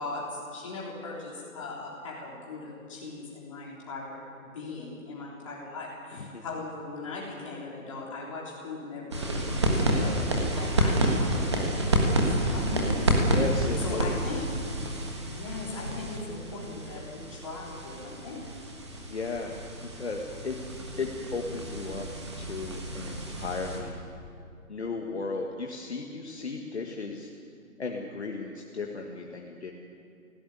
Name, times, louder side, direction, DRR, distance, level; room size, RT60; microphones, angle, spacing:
voice 1, 0.0-10.2 10.5-13.3 13.8-14.5 15.2-18.5, left 3 dB, 20° left, -4 dB, 3.6 m, -39 dB
sound 1, 9.1-23.8, right 1 dB, 20° right, 1.5 m, -29 dB
voice 2, 13.3-14.2 19.1-20.6 21.0-22.1 22.4-24.1 24.7-27.3 27.8-29.7, left 4 dB, 50° left, 1 dB, 1.8 m, -35 dB
18.5 x 17.0 x 9.9 m, 2.5 s
hypercardioid pair, 180°, 43 cm